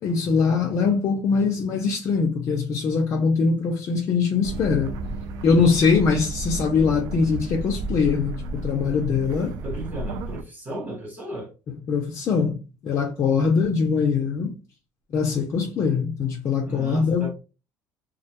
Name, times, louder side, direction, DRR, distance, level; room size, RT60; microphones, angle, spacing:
voice 1, 0.0-4.9 5.4-9.6 11.9-12.6 12.8-14.6 15.1-17.2, left 5 dB, 45° left, 0.4 m, -22 dB
sound 1, 4.4-10.4, right 2 dB, 70° right, 0.3 m, -32 dB
voice 2, 9.6-11.5 16.7-17.3, right 1 dB, 25° right, 0.8 m, -34 dB
2.3 x 2.1 x 2.8 m
cardioid pair, 125°, 7 cm